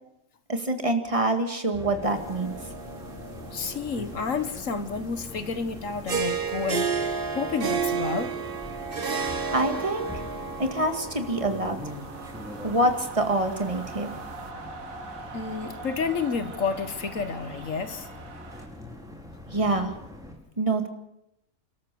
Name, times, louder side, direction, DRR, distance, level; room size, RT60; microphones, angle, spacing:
voice 1, 0.5-2.6 9.5-10.1 10.6-11.8 12.6-14.1 19.5-20.0 20.6-20.9, right 2 dB, 25° right, 7 dB, 2.0 m, -26 dB
sound 1, 1.7-20.3, left 1 dB, ahead, 4.3 m, -43 dB
sound 2, 2.0-14.5, right 5 dB, 40° right, 1.4 m, -33 dB
voice 2, 3.5-8.3 15.3-18.1, left 5 dB, 65° left, 10 dB, 1.6 m, -30 dB
sound 3, 9.8-18.7, right 3 dB, 70° right, 2.5 m, -44 dB
29.0 x 13.5 x 6.9 m, 0.84 s
omnidirectional pair, 1.5 m